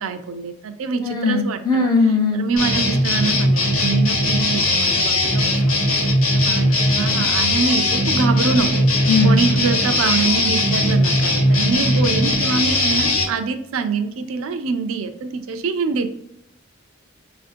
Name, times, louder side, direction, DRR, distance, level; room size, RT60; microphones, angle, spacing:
voice 1, 0.0-1.9 2.3-5.7 6.3-16.1, right 5 dB, 75° right, 8 dB, 0.4 m, -25 dB
voice 2, 1.0-2.4 9.1-9.4, left 4 dB, 20° left, 2 dB, 0.6 m, -19 dB
sound 1, 2.6-13.2, left 1 dB, 85° left, 1.0 m, -19 dB
4.3 x 2.5 x 2.5 m, 0.76 s
head